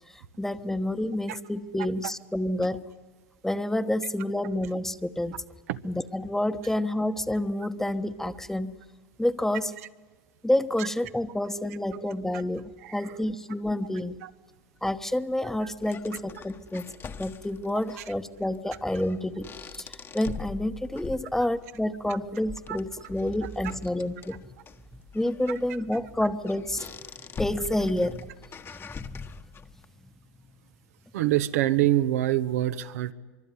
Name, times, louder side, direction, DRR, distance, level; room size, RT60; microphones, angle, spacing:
voice 1, 0.1-2.8 3.4-5.4 5.8-8.8 9.2-9.7 10.4-14.2 14.8-16.8 17.2-24.4 25.1-26.9 27.4-28.3 28.8-29.3, left 1 dB, 5° left, 11 dB, 1.2 m, -29 dB
voice 2, 12.8-13.2 14.2-14.3 15.6-15.7 22.1-22.2 22.7-22.8 31.1-33.1, right 14 dB, 75° right, 11 dB, 1.1 m, -26 dB
sound 1, 14.8-29.8, left 6 dB, 30° left, 1.4 m, -44 dB
24.5 x 24.0 x 9.7 m, 1.3 s
hypercardioid pair, 100°, 8 cm